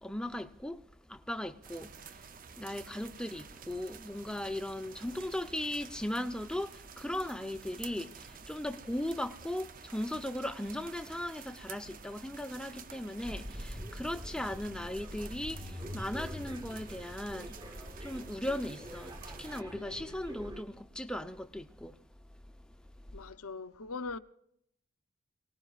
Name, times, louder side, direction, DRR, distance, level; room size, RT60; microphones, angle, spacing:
voice 1, 0.0-2.3 2.5-22.0 23.1-23.2, left 1 dB, 5° left, 0.6 m, -38 dB
sound 1, 1.6-19.6, right 6 dB, 40° right, 0.6 m, -51 dB
sound 2, 13.2-20.6, equal, 20° right, 1.3 m, -44 dB
voice 2, 19.7-20.2 23.1-24.2, left 4 dB, 80° left, 0.7 m, -42 dB
29.0 x 19.0 x 2.4 m
head